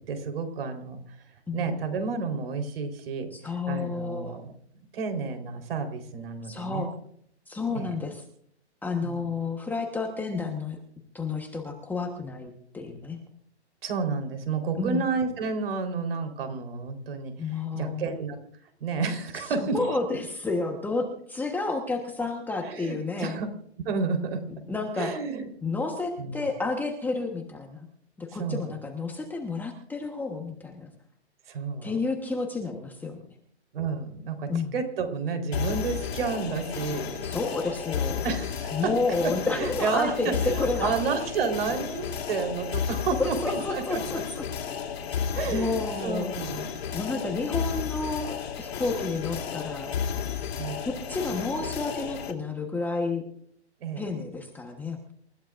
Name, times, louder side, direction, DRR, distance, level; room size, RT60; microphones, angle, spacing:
voice 1, 0.1-1.0 1.5-4.5 4.9-6.9 7.7-7.9 9.0-9.3 13.8-18.4 18.8-19.8 20.1-20.2 22.6-23.5 23.8-24.4 25.0-25.5 26.2-26.3 28.4-28.7 31.5-32.0 33.7-37.3 38.2-38.9 39.5-44.0 45.3-46.8 50.6-50.9 53.8-54.1, right 5 dB, 55° right, 6 dB, 4.1 m, -31 dB
voice 2, 3.3-4.4 6.4-6.9 7.5-8.2 8.8-10.8 11.1-13.2 14.8-15.0 17.4-18.2 19.5-23.4 24.7-25.1 25.6-27.9 28.2-30.9 31.8-33.2 34.5-34.7 37.2-38.2 38.7-40.9 43.2-44.4 45.1-45.2 45.5-46.3 46.9-49.9 50.8-53.2 54.0-55.1, left 3 dB, 5° left, 2 dB, 1.2 m, -30 dB
sound 1, 35.5-52.3, left 7 dB, 65° left, 2.8 m, -33 dB
28.0 x 14.5 x 2.6 m, 0.65 s
hypercardioid pair, 150°, 34 cm